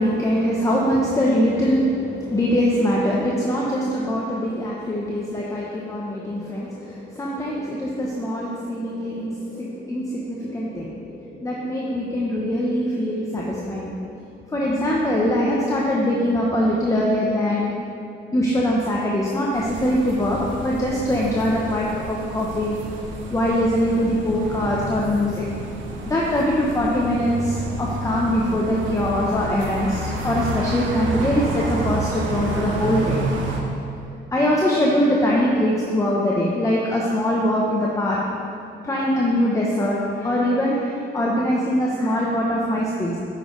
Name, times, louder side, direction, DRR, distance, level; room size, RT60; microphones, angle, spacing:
voice 1, 0.0-14.0 14.5-17.7 18.3-22.7 23.3-25.5 26.0-33.2 34.3-38.2 38.8-43.2, equal, 15° left, -4 dB, 0.9 m, -22 dB
sound 1, 19.5-33.6, right 2 dB, 75° right, 0.9 m, -30 dB
8.6 x 6.3 x 3.2 m, 2.4 s
cardioid pair, 90°, 20 cm